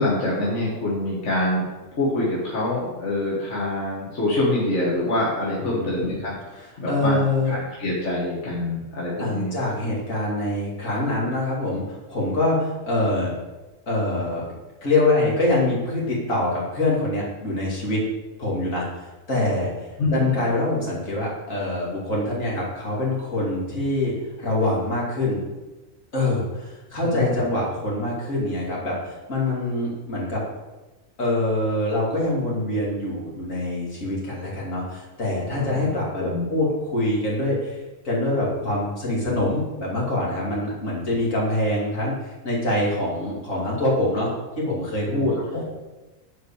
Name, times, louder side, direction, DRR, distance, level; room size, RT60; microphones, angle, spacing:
voice 1, 0.0-1.7 1.9-6.3 6.8-9.5 20.0-20.5 27.0-27.5 35.5-35.9 36.2-36.5 45.1-45.6, left 2 dB, 65° left, -6 dB, 1.9 m, -25 dB
voice 2, 5.6-6.2 6.6-7.6 9.2-13.3 13.9-14.4 14.8-18.0 18.4-25.4 26.1-30.4 31.2-37.8 38.0-44.3 44.6-45.3, left 1 dB, 80° left, -5 dB, 3.1 m, -25 dB
7.6 x 4.9 x 7.0 m, 1.1 s
omnidirectional pair, 1.4 m